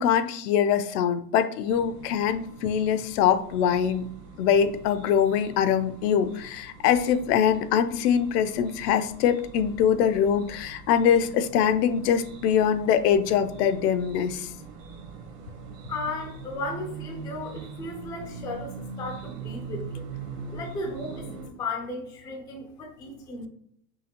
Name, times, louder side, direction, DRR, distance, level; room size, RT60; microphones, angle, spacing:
voice 1, 0.0-4.1 4.4-14.5, left 8 dB, 70° left, 11 dB, 0.6 m, -23 dB
sound 1, 1.7-21.5, right 5 dB, 75° right, 1.3 m, -42 dB
voice 2, 15.9-20.1 20.5-21.3 21.6-23.5, left 2 dB, 10° left, 2 dB, 0.3 m, -35 dB
5.6 x 2.8 x 2.9 m, 0.67 s
supercardioid pair, 130°, 48 cm